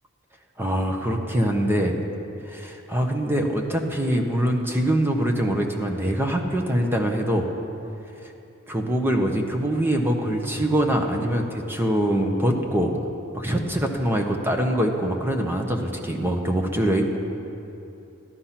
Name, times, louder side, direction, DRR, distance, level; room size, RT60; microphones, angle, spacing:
voice 1, 0.6-2.0 2.5-7.5 8.7-12.9 13.3-17.2, right 1 dB, 10° right, 2 dB, 1.0 m, -23 dB
13.5 x 12.0 x 5.8 m, 2.8 s
head